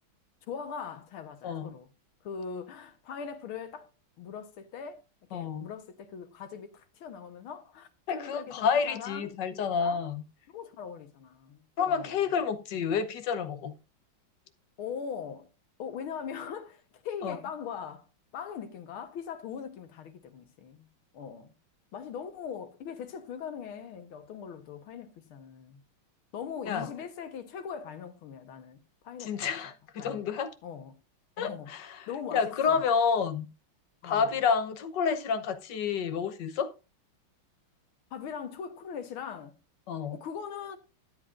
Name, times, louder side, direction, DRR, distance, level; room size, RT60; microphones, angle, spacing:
voice 1, 0.5-1.9 2.2-3.9 4.2-5.0 5.3-10.0 10.5-11.6 11.9-12.3 14.8-15.5 15.8-18.1 18.3-20.9 21.1-21.5 21.9-25.8 26.3-29.4 29.6-29.7 30.0-30.2 30.6-31.0 31.4-31.7 32.1-32.8 34.0-34.4 38.1-39.6 40.1-40.8, left 7 dB, 90° left, 2.0 m, -41 dB
voice 2, 5.3-5.7 8.1-10.2 11.8-13.7 17.2-17.4 26.7-26.9 29.2-30.5 31.4-33.5 34.0-36.7 39.9-40.2, left 6 dB, 65° left, 1.5 m, -29 dB
13.0 x 10.0 x 2.5 m
omnidirectional pair, 2.2 m